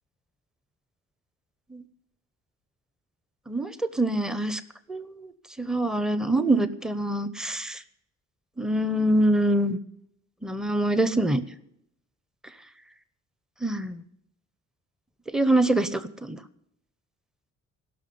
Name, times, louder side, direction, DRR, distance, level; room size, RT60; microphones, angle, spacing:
voice 1, 3.5-4.6 4.9-5.3 5.6-7.8 8.6-9.8 10.4-11.4 13.6-14.0 15.3-16.4, right 1 dB, ahead, 13 dB, 0.9 m, -25 dB
16.0 x 6.3 x 9.5 m, 0.74 s
cardioid pair, 90°, 30 cm